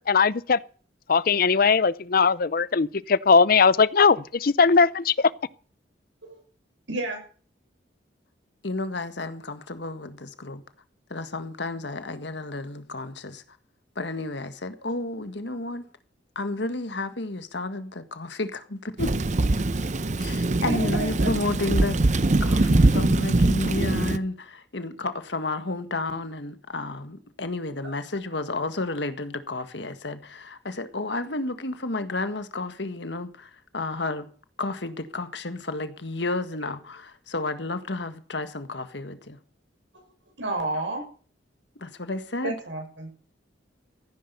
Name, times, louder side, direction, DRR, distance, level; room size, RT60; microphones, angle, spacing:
voice 1, 0.1-0.6 1.1-5.3, left 5 dB, 50° left, 0.6 m, -19 dB
voice 2, 6.9-7.2 20.5-21.4 27.8-27.9 40.4-41.0 42.4-43.1, right 2 dB, 85° right, 6.8 m, -31 dB
voice 3, 8.6-10.6 11.1-13.4 13.9-15.8 16.3-19.1 20.2-34.3 34.6-39.4 40.9-41.0 41.8-42.5, left 2 dB, 65° left, 1.7 m, -32 dB
Thunder / Rain, 19.0-24.2, right 2 dB, 40° right, 0.7 m, -22 dB
15.5 x 10.5 x 6.8 m
head